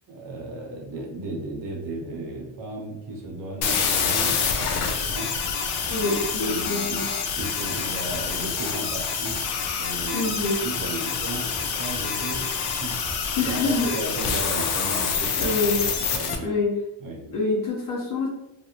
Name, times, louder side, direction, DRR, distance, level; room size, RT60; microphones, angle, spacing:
voice 1, 0.1-5.3 5.9-6.1 6.3-7.1 7.4-9.5 9.8-15.6 16.0-16.5 17.0-17.2, right 2 dB, 45° right, -1 dB, 0.7 m, -35 dB
sound 1, 3.2-16.2, right 1 dB, 25° right, 0.3 m, -45 dB
sound 2, 3.6-16.4, left 6 dB, 75° left, 0.6 m, -27 dB
voice 2, 5.9-7.1 10.1-10.6 13.4-13.9 15.4-15.8 16.4-16.8 17.3-18.3, left 3 dB, 40° left, -3 dB, 0.8 m, -25 dB
2.5 x 2.0 x 2.8 m, 0.85 s
cardioid pair, 155°, 49 cm